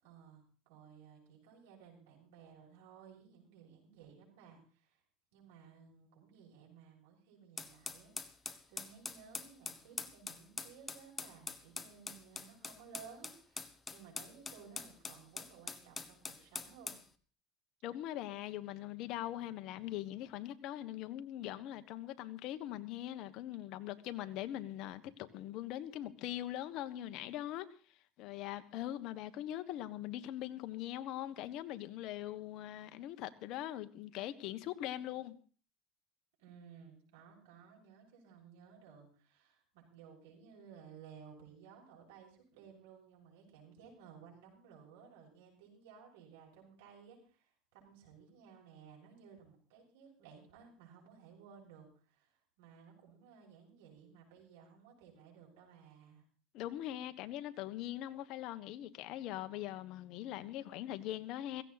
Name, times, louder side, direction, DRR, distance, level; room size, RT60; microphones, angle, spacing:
voice 1, 0.0-5.0 5.3-8.3 8.7-16.9 36.4-52.3 52.6-56.2, right 6 dB, 90° right, 6.8 m, -57 dB
sound 1, 7.6-17.0, left 4 dB, 15° left, 1.2 m, -44 dB
voice 2, 17.8-27.7 28.2-35.3 56.5-61.6, left 13 dB, 60° left, 1.3 m, -41 dB
16.5 x 15.5 x 4.2 m
supercardioid pair, 125°, 0 cm